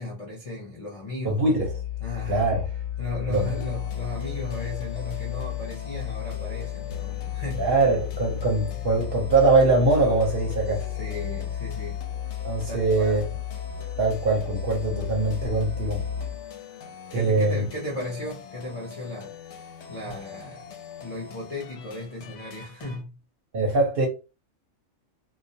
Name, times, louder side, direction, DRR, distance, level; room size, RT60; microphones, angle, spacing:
voice 1, 0.0-1.6 2.0-2.5 3.0-7.8 8.7-8.9 10.8-12.0 12.7-13.2 17.1-19.6 19.9-20.7 21.0-23.1, left 2 dB, 45° left, 0.4 m, -36 dB
voice 2, 1.2-1.7 2.3-2.6 3.3-3.5 7.6-10.8 12.4-13.2 14.0-16.0 17.1-17.6 23.5-24.1, right 3 dB, 55° right, 0.7 m, -22 dB
Musical instrument, 1.5-16.5, left 10 dB, 90° right, 1.0 m, -33 dB
sound 1, 3.3-23.0, left 7 dB, 65° left, 0.8 m, -43 dB
2.3 x 2.1 x 2.6 m
omnidirectional pair, 1.4 m